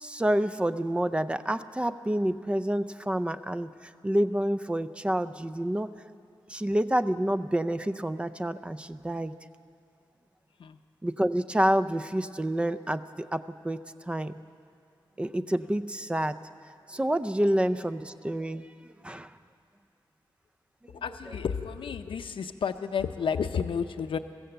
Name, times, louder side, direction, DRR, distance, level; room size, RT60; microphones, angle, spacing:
voice 1, 0.0-5.9 6.5-9.3 11.0-14.3 15.2-16.4 16.9-18.7 19.0-19.3, right 1 dB, 15° right, 12 dB, 0.5 m, -28 dB
voice 2, 20.9-24.2, left 6 dB, 80° left, 9 dB, 0.6 m, -31 dB
22.0 x 15.0 x 7.9 m, 2.4 s
wide cardioid pair, 170°, 9 cm